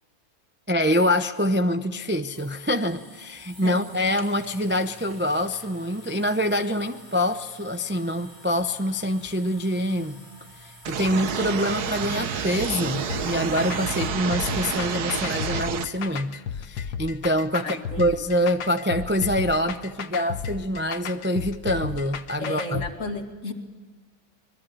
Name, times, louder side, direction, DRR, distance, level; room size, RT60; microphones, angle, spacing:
voice 1, 0.7-10.2 10.6-22.8, equal, 10° right, 0.5 m, -25 dB
sound 1, 1.9-14.1, equal, 10° left, 4.6 m, -49 dB
sound 2, 10.8-15.8, right 7 dB, 80° right, 1.7 m, -29 dB
sound 3, 13.1-22.9, left 7 dB, 90° left, 1.6 m, -34 dB
voice 2, 17.5-18.1 22.4-23.5, left 2 dB, 50° left, 2.8 m, -33 dB
25.5 x 21.5 x 8.8 m
omnidirectional pair, 1.7 m